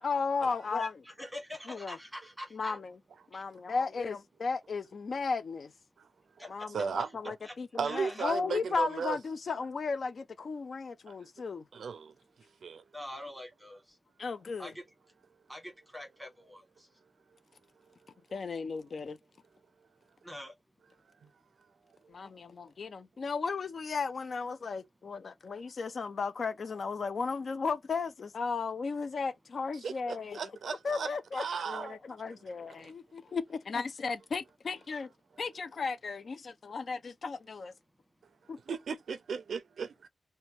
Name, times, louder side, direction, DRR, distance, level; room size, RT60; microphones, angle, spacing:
voice 1, 0.0-0.9 1.7-2.0 2.5-3.0 3.3-5.7 6.5-11.6 14.2-14.7 18.3-19.2 22.1-30.4 30.7-35.1 35.4-37.7 38.5-38.6, left 4 dB, 60° left, 0.4 m, -35 dB
voice 2, 0.7-2.8 3.3-3.4 6.4-6.5 7.4-7.5 7.8-8.2 12.9-13.8 14.6-14.7 15.5-16.6 20.2-20.5, left 1 dB, 5° right, 1.3 m, -44 dB
voice 3, 6.7-7.3 7.8-9.2 11.1-11.2 11.7-12.1 12.6-12.8 21.2-21.3 29.8-32.0 32.2-32.4 32.6-32.9 38.7-40.1, right 5 dB, 85° right, 0.4 m, -36 dB
2.9 x 2.2 x 2.9 m
wide cardioid pair, 110°, 0 cm